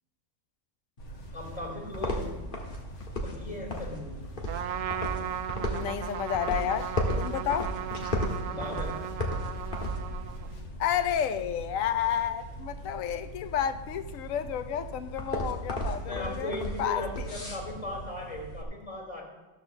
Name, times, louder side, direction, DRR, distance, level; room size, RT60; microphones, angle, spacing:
sound 1, 1.0-18.0, right 1 dB, 65° left, 1.7 m, -46 dB
sound 2, 1.0-18.6, equal, 40° left, 1.7 m, -36 dB
voice 1, 1.3-2.3 3.2-4.2 8.4-9.0 16.0-19.2, left 2 dB, 25° left, 3.7 m, -38 dB
Trumpet, 4.5-10.6, right 10 dB, 85° right, 1.0 m, -36 dB
voice 2, 5.7-6.9 7.2-7.7 10.8-16.5 16.8-17.3, left 9 dB, 90° left, 1.0 m, -31 dB
14.0 x 4.8 x 7.0 m
omnidirectional pair, 1.3 m